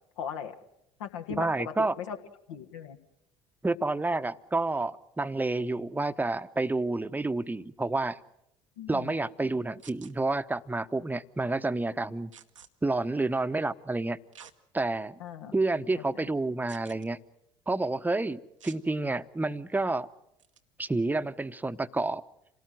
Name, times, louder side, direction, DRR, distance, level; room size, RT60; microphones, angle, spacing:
voice 1, 0.2-0.6 1.0-2.2 2.5-3.0 8.8-9.1 15.2-15.5 15.9-16.0, left 8 dB, 70° left, 6 dB, 1.7 m, -38 dB
voice 2, 1.3-2.0 3.6-8.2 8.9-12.3 12.8-14.2 14.7-15.2 15.5-17.2 17.7-20.1 20.8-22.2, right 2 dB, 10° right, 12 dB, 0.9 m, -29 dB
sound 1, 9.8-10.1 12.3-12.7 14.3-14.6 15.2-15.3 16.7-17.1 18.6-18.8 20.4-20.6, right 8 dB, 85° right, 1.0 m, -50 dB
27.0 x 18.5 x 7.8 m, 0.81 s
figure-of-eight pair, 60°, 16 cm